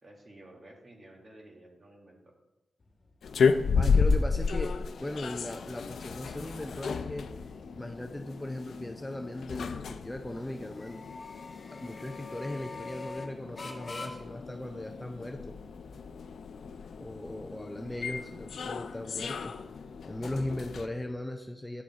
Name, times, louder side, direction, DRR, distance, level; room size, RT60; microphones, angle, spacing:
voice 1, 0.0-2.3 17.8-18.8, right 1 dB, 30° right, 1 dB, 1.8 m, -54 dB
sound 1, 2.8-20.0, left 3 dB, 35° left, 1.5 m, -49 dB
sound 2, 3.2-20.9, left 5 dB, 75° left, 0.5 m, -33 dB
voice 2, 3.4-4.7 5.0-7.3 7.8-11.1 11.7-15.6 17.0-19.5 20.1-21.8, left 1 dB, 10° left, 4 dB, 0.5 m, -38 dB
10.0 x 6.5 x 4.2 m, 1.0 s
wide cardioid pair, 130°, 0 cm